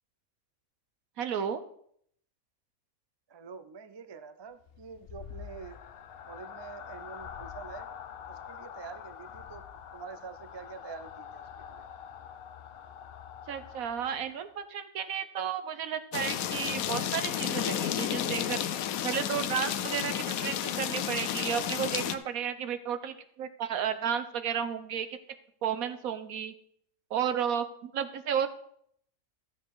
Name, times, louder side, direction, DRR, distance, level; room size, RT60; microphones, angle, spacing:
voice 1, 1.2-1.6 13.5-18.6 19.0-25.2 25.6-26.5 27.1-28.5, right 8 dB, 80° right, 11 dB, 1.3 m, -33 dB
voice 2, 3.3-5.8 6.3-7.9 8.3-9.7 9.9-11.8, right 5 dB, 40° right, 11 dB, 0.3 m, -46 dB
sound 1, 4.6-14.6, left 8 dB, 60° left, 0.7 m, -46 dB
sound 2, 16.1-22.2, left 10 dB, 80° left, 1.1 m, -32 dB
13.0 x 7.1 x 4.7 m, 0.67 s
omnidirectional pair, 1.5 m